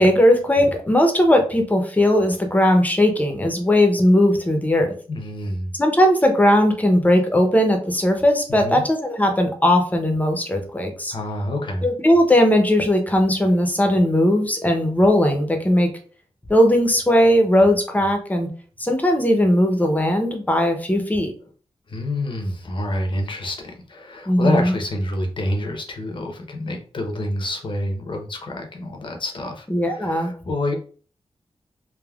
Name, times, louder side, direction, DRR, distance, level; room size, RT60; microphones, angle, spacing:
voice 1, 0.0-4.9 5.7-11.1 11.8-15.9 16.5-18.5 18.8-21.3 24.3-24.7 29.7-30.3, left 1 dB, 15° left, 4 dB, 0.6 m, -18 dB
voice 2, 5.1-5.7 8.5-8.8 11.1-11.8 21.9-30.7, left 1 dB, 50° left, 3 dB, 0.7 m, -27 dB
3.4 x 2.1 x 2.3 m, 0.42 s
wide cardioid pair, 105°, 11 cm